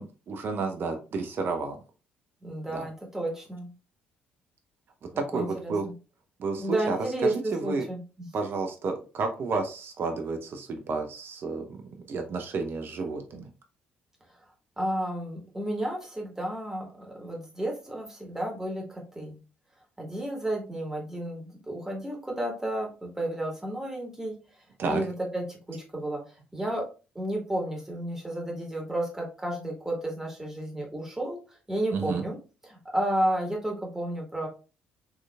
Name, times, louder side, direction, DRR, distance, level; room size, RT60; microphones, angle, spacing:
voice 1, 0.0-1.8 2.7-2.9 5.2-5.8 6.4-7.9 8.3-11.8 12.1-13.5 24.8-25.0 31.9-32.2, right 4 dB, 45° right, 5 dB, 0.6 m, -31 dB
voice 2, 2.4-3.7 5.3-5.9 6.6-8.3 14.8-19.4 20.0-24.3 24.9-26.8 27.1-31.4 31.7-32.4 32.6-34.5, right 1 dB, 10° right, -1 dB, 1.6 m, -32 dB
4.6 x 3.0 x 2.3 m, 0.33 s
figure-of-eight pair, 45°, 5 cm